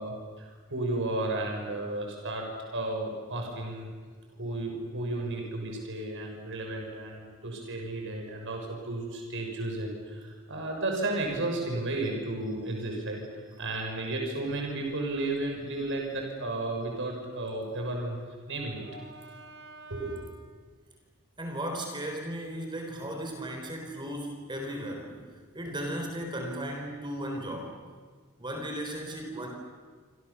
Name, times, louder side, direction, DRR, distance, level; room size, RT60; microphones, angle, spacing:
voice 1, 0.0-2.5 2.7-3.9 4.3-18.2 18.5-20.3, right 2 dB, 60° right, 1 dB, 6.3 m, -33 dB
voice 2, 21.4-25.2 25.5-27.8 28.4-29.5, right 1 dB, 20° right, 2 dB, 4.1 m, -36 dB
28.0 x 26.0 x 7.1 m, 1.5 s
head